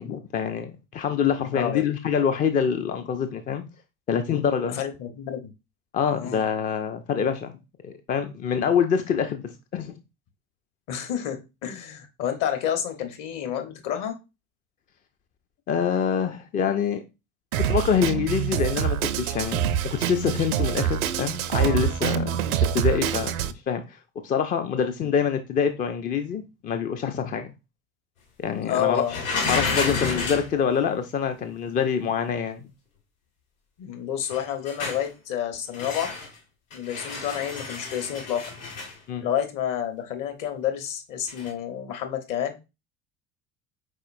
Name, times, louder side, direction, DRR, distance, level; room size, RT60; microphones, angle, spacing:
voice 1, 0.0-3.6 4.1-4.8 5.9-7.5 7.8-10.0 15.7-17.0 17.6-22.4 22.7-24.0 24.2-27.5 28.4-29.2 29.4-32.7 39.1-39.2, left 7 dB, 20° left, 0.4 m, -26 dB
voice 2, 1.5-1.8 4.7-5.5 6.1-6.4 10.9-14.2 22.1-22.4 28.6-29.2 33.8-36.1 36.7-38.5 39.2-42.5, left 9 dB, 45° left, 1.1 m, -29 dB
Drum kit, 17.5-23.5, right 10 dB, 75° right, 0.5 m, -25 dB
sound 1, 29.1-30.5 34.3-35.1 35.7-36.3 36.7-38.9 41.3-41.5, left 4 dB, 75° left, 2.1 m, -30 dB
4.8 x 4.1 x 2.6 m
figure-of-eight pair, 70°, 43 cm